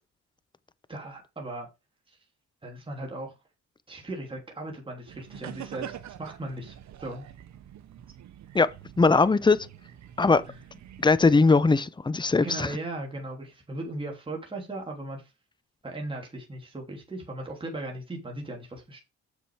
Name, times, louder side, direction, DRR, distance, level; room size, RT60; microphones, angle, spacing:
voice 1, 0.9-1.7 2.1-2.2 2.6-3.3 3.9-7.3 10.5-10.6 12.3-15.3 15.8-19.0, right 2 dB, 15° right, 3.1 m, -37 dB
sound 1, 5.1-11.4, right 10 dB, 65° right, 1.2 m, -45 dB
voice 2, 8.5-9.7 10.2-10.4 11.0-12.7, left 3 dB, 15° left, 0.8 m, -21 dB
7.4 x 7.0 x 4.9 m
cardioid pair, 90°, 30 cm